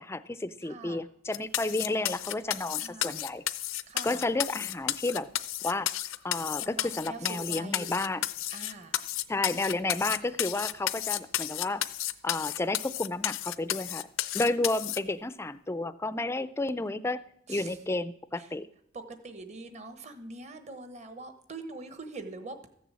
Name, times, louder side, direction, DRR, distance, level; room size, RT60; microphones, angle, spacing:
voice 1, 0.0-3.4 4.0-5.3 5.6-5.9 6.2-8.2 9.3-11.8 12.2-14.0 14.3-17.2 17.5-18.7, left 2 dB, 15° left, 15 dB, 0.4 m, -31 dB
voice 2, 0.6-1.0 2.8-3.1 3.9-4.2 6.6-8.0 8.5-9.0 17.5-17.8 18.4-18.5 18.9-22.7, right 3 dB, 35° right, 8 dB, 1.1 m, -43 dB
sound 1, 1.3-15.0, left 13 dB, 85° left, 0.6 m, -32 dB
14.5 x 7.0 x 7.5 m, 0.71 s
head